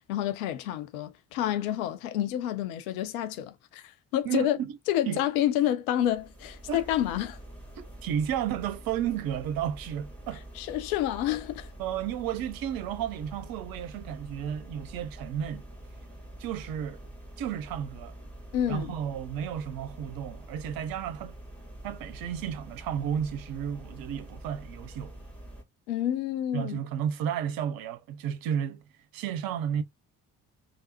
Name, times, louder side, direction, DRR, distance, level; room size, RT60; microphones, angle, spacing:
voice 1, 0.1-4.6 4.9-7.4 10.6-11.7 18.5-18.9 25.9-26.8, left 12 dB, 65° left, 0.6 m, -29 dB
voice 2, 4.2-4.7 5.1-5.2 6.7-6.8 7.8-10.4 11.8-15.7 16.4-17.0 17.4-18.2 18.7-21.3 21.8-25.1 26.5-28.8 29.1-29.8, right 9 dB, 50° right, 0.6 m, -32 dB
sound 1, 6.0-25.6, right 1 dB, 5° left, 1.5 m, -46 dB
3.3 x 2.3 x 2.7 m
figure-of-eight pair, 45°, 47 cm